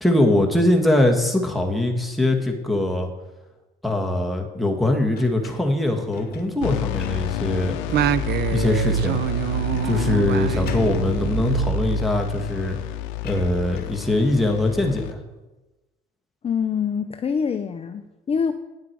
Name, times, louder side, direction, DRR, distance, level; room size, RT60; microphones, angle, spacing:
voice 1, 0.0-3.1 3.8-7.8 8.5-9.2 9.8-12.8 13.2-15.2, left 1 dB, ahead, 1 dB, 1.7 m, -22 dB
sound 1, 5.1-7.7 8.2-8.3 9.7-10.2 10.5-11.1 12.1-12.2 12.5-14.0, left 6 dB, 55° left, 1.2 m, -43 dB
sound 2, 6.6-15.1, left 15 dB, 90° left, 0.6 m, -29 dB
Singing, 7.9-12.6, right 12 dB, 60° right, 0.5 m, -25 dB
voice 2, 16.4-18.5, left 6 dB, 30° left, 8 dB, 0.5 m, -25 dB
9.7 x 7.5 x 4.7 m, 1.1 s
supercardioid pair, 85°, 19 cm